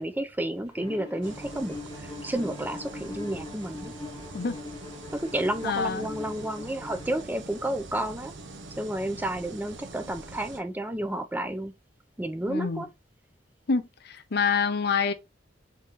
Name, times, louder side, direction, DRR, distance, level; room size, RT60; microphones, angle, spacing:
voice 1, 0.0-3.9 5.1-8.3 8.8-11.7 12.2-12.9, right 1 dB, 10° right, 0.4 m, -31 dB
Bowed string instrument, 0.7-7.3, left 2 dB, 20° left, 1.1 m, -42 dB
sound 1, 1.2-10.6, right 3 dB, 80° right, 0.8 m, -44 dB
voice 2, 5.6-6.1 12.5-12.9 13.7-15.1, left 5 dB, 60° left, 0.6 m, -27 dB
3.7 x 2.9 x 4.5 m
head